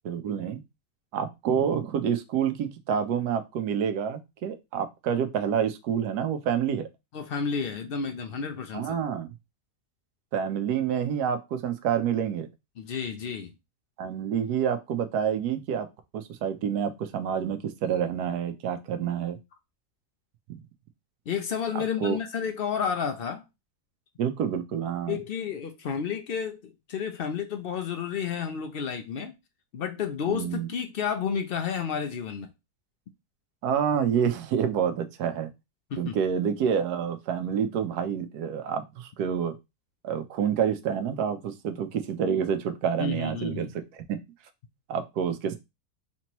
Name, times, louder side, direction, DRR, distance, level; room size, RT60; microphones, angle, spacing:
voice 1, 0.0-0.6 1.1-6.9 8.7-9.3 10.3-12.5 14.0-15.9 16.1-19.4 20.5-20.6 21.7-22.2 24.2-25.2 30.3-30.7 33.6-35.5 36.0-39.6 40.0-43.7 44.1-44.2 44.9-45.6, right 8 dB, 90° right, 1.2 m, -28 dB
voice 2, 7.1-9.0 12.8-13.5 21.3-23.4 25.1-29.3 29.7-32.5 35.9-36.2 43.0-43.7, left 7 dB, 70° left, 0.5 m, -31 dB
4.2 x 3.0 x 2.9 m
omnidirectional pair, 1.6 m